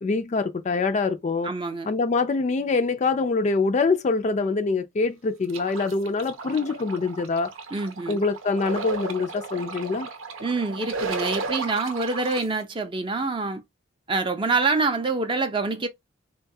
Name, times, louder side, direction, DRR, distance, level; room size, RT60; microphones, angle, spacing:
voice 1, 0.0-1.5 1.9-7.5 8.1-10.1, left 4 dB, 35° left, 0.3 m, -24 dB
voice 2, 1.4-1.9 7.7-8.2 10.4-13.6 14.1-15.9, right 3 dB, 25° right, 0.4 m, -26 dB
sound 1, 5.5-12.4, right 4 dB, 85° right, 0.7 m, -34 dB
3.8 x 2.3 x 2.6 m
head